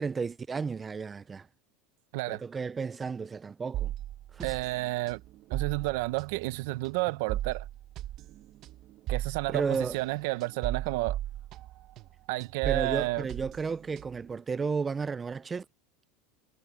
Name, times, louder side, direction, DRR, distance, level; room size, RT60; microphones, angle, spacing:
voice 1, 0.0-1.5 2.3-3.9 4.3-4.6 9.5-10.0 12.7-15.6, right 5 dB, 15° right, 0.4 m, -33 dB
sound 1, 3.7-12.1 12.4-14.3, right 13 dB, 40° right, 0.9 m, -37 dB
voice 2, 4.4-5.2 5.5-7.7 9.1-11.2 12.3-13.3, right 21 dB, 65° right, 0.8 m, -31 dB
supercardioid pair, 145°, 0 cm